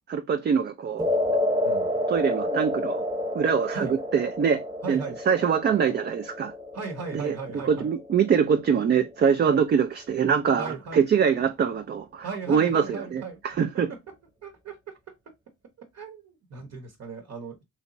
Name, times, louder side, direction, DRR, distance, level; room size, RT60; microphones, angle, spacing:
voice 1, 0.1-1.1 2.1-3.0 3.3-3.9 4.1-4.6 4.9-6.5 7.1-7.3 7.7-13.9, right 7 dB, 35° right, 0.4 m, -24 dB
sound 1, 1.0-9.3, left 1 dB, 15° right, 0.9 m, -30 dB
voice 2, 4.8-5.2 6.7-7.9 9.4-9.6 10.6-11.0 12.2-13.4 14.4-14.9 15.8-17.6, right 5 dB, 55° right, 0.9 m, -37 dB
3.3 x 3.0 x 2.6 m
cardioid pair, 90°, 30 cm